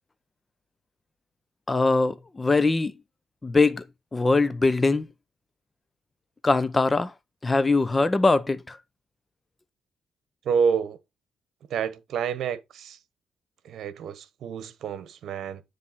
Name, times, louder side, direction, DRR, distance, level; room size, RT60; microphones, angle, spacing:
voice 1, 1.7-3.0 3.4-3.9 4.1-5.1 6.4-7.1 7.4-8.8, left 3 dB, 20° left, 0.7 m, -22 dB
voice 2, 10.4-11.0 11.7-13.0 13.6-15.6, right 6 dB, 70° right, 1.0 m, -28 dB
9.6 x 3.3 x 4.2 m
cardioid pair, 90°, 0 cm